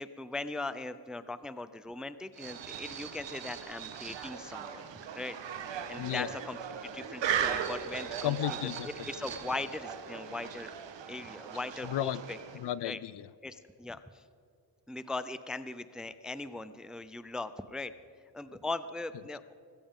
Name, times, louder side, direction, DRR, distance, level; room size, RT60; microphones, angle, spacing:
voice 1, 0.0-4.9 5.1-5.4 5.9-6.6 6.8-8.4 9.1-10.7 11.1-12.4 12.8-13.0 13.4-14.2 14.9-17.9 18.3-19.5, left 2 dB, ahead, 13 dB, 0.3 m, -39 dB
sound 1, 2.3-12.7, right 8 dB, 90° right, 1.2 m, -38 dB
voice 2, 6.0-6.3 8.2-9.1 11.8-12.2 12.5-13.3, left 13 dB, 70° left, 19 dB, 0.5 m, -34 dB
19.5 x 16.0 x 3.7 m, 2.4 s
wide cardioid pair, 125°, 43 cm